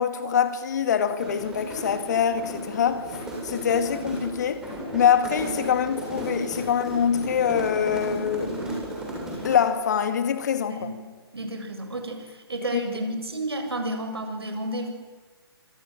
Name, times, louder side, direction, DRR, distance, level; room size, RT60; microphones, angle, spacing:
voice 1, 0.0-3.1 3.4-4.6 4.9-8.7 9.4-10.9 12.7-12.8, left 8 dB, 45° left, 2.4 m, -24 dB
sound 1, 1.0-9.7, right 1 dB, 5° right, 7.9 m, -34 dB
voice 2, 11.3-14.9, right 1 dB, 70° right, 7.7 m, -31 dB
26.5 x 26.0 x 7.7 m
figure-of-eight pair, 140°, 14 cm